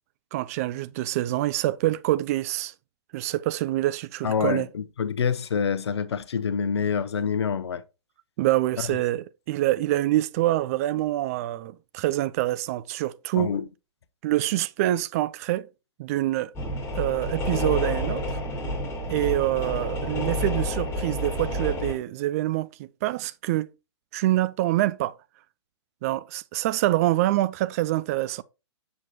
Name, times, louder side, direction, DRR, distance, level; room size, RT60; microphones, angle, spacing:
voice 1, 0.3-2.7 3.1-4.7 8.4-13.6 14.2-15.7 16.0-16.5 16.9-18.4 19.1-23.7 24.1-25.1 26.0-28.4, right 15 dB, 30° right, 0.4 m, -26 dB
voice 2, 4.2-7.8 13.3-13.6, left 6 dB, 60° left, 0.8 m, -26 dB
sound 1, 16.6-22.0, left 1 dB, 15° left, 1.7 m, -29 dB
7.5 x 6.2 x 2.8 m
figure-of-eight pair, 120°, 15 cm